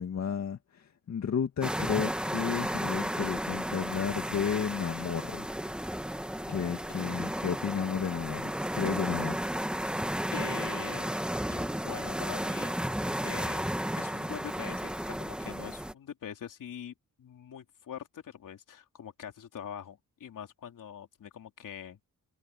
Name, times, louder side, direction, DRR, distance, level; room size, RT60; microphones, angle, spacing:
voice 1, 0.0-5.5 6.5-9.5, left 7 dB, 60° left, 2.1 m, -32 dB
sound 1, 1.6-15.9, equal, 5° right, 1.4 m, -33 dB
voice 2, 10.3-11.2 11.5-12.8 13.2-13.6 14.0-22.0, left 8 dB, 85° left, 3.4 m, -43 dB
wide cardioid pair, 125°, 31 cm